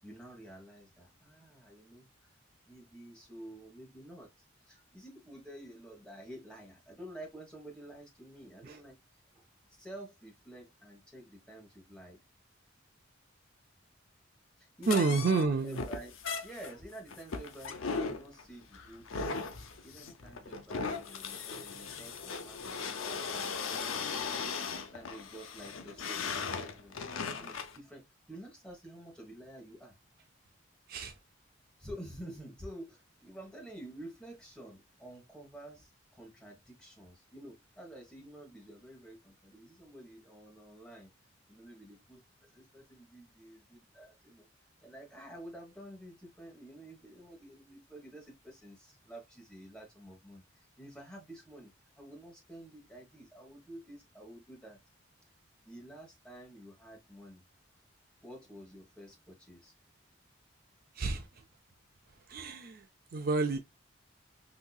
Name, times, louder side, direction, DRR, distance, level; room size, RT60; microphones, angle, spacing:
voice 1, 0.0-2.3 2.7-9.0 9.3-9.4 9.7-12.2 14.6-16.1 16.4-19.4 19.8-30.0 31.8-41.1 41.5-44.5 44.8-54.8 55.6-57.4 58.2-59.7, right 1 dB, 5° left, 1.1 m, -50 dB
sound 1, 14.8-27.8, left 5 dB, 80° left, 0.6 m, -38 dB
voice 2, 14.9-15.8 30.9-31.1 61.0-61.3 62.3-62.9 63.1-63.6, right 4 dB, 45° right, 0.4 m, -29 dB
3.9 x 2.8 x 2.2 m
head